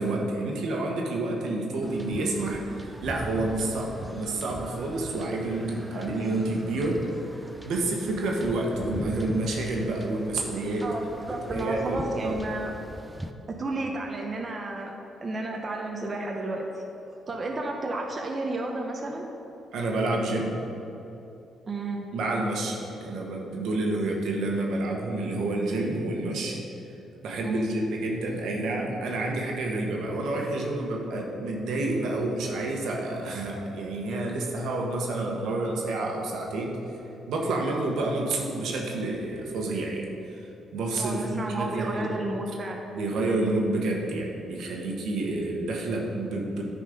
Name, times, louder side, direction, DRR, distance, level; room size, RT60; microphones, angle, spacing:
voice 1, 0.0-7.1 7.6-10.9 11.3-12.4 19.7-20.6 22.1-26.6 27.2-36.8 37.3-42.2 42.9-46.6, right 2 dB, 75° right, 0 dB, 1.2 m, -29 dB
sound 1, 1.8-13.3, right 1 dB, 10° right, 0.5 m, -41 dB
voice 2, 10.8-12.7 13.5-14.9 15.2-16.6 17.3-19.2 21.7-22.1 27.4-27.7 41.0-42.9, right 2 dB, 35° right, 1 dB, 0.8 m, -32 dB
10.0 x 4.2 x 5.1 m, 3.0 s
cardioid pair, 90°, 0 cm